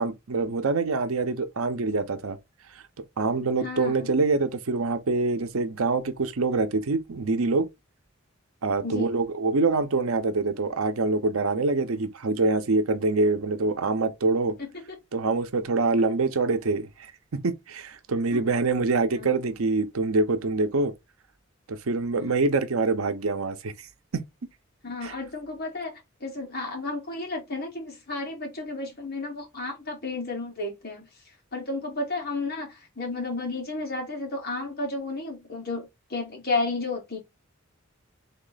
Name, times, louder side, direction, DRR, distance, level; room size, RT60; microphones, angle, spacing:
voice 1, 0.0-2.4 3.2-7.7 8.6-14.5 15.1-20.9 21.7-23.7 24.1-24.2 25.0-25.1, right 3 dB, 85° right, 0.7 m, -25 dB
voice 2, 3.6-4.1 8.8-9.1 14.6-15.0 18.3-18.6 19.1-19.3 22.2-22.5 24.8-31.1 31.5-37.2, left 3 dB, 50° left, 2.1 m, -32 dB
3.6 x 3.2 x 3.9 m
head